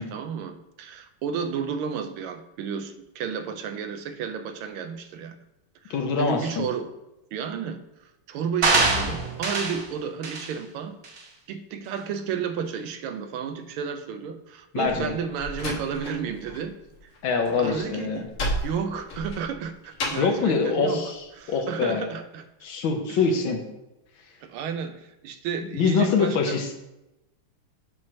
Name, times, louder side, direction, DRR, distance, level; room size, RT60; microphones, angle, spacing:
voice 1, 0.0-5.4 5.8-6.9 7.3-11.0 11.5-16.8 17.0-17.1 17.6-18.3 18.6-22.5 23.1-23.2 24.4-26.6, right 7 dB, 80° right, 8 dB, 1.4 m, -32 dB
voice 2, 5.9-6.6 14.7-15.1 17.2-18.3 20.2-22.1 22.6-23.6 25.7-26.7, left 5 dB, 70° left, 4 dB, 1.6 m, -24 dB
sound 1, 8.6-9.8 10.2-10.5 11.0-11.2, right 3 dB, 50° right, 1.1 m, -23 dB
Slam, 14.8-16.7 16.9-20.4, left 1 dB, 85° left, 2.2 m, -33 dB
7.3 x 3.1 x 6.1 m, 0.94 s
omnidirectional pair, 2.4 m